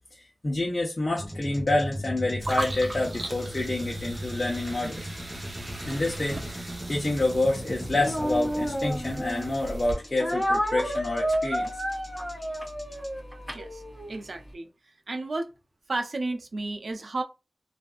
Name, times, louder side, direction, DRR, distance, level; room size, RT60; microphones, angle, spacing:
voice 1, 0.1-5.1 5.9-11.8, left 2 dB, 50° left, 0.8 m, -28 dB
sound 1, 1.2-13.1, equal, 5° left, 1.2 m, -38 dB
sound 2, 2.4-9.9, right 1 dB, 50° right, 1.0 m, -38 dB
Speech, 8.0-9.5 10.2-14.2, equal, 15° right, 1.9 m, -30 dB
voice 2, 13.5-13.8 14.1-14.7 15.1-15.5 15.9-17.2, right 2 dB, 80° right, 0.6 m, -32 dB
3.3 x 2.6 x 2.4 m
wide cardioid pair, 50°, 0 cm